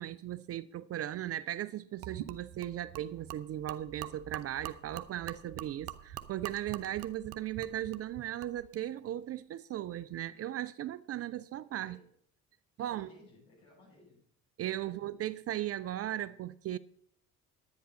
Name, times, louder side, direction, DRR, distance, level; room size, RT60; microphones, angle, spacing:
voice 1, 0.0-12.0 12.8-13.1 14.6-16.8, right 12 dB, 35° right, 0.4 m, -37 dB
Gurgling / Liquid, 2.0-8.8, right 13 dB, 65° right, 0.8 m, -45 dB
voice 2, 12.8-14.2 14.7-15.1, left 2 dB, 75° left, 6.0 m, -59 dB
10.0 x 9.5 x 5.3 m
figure-of-eight pair, 50°, 43 cm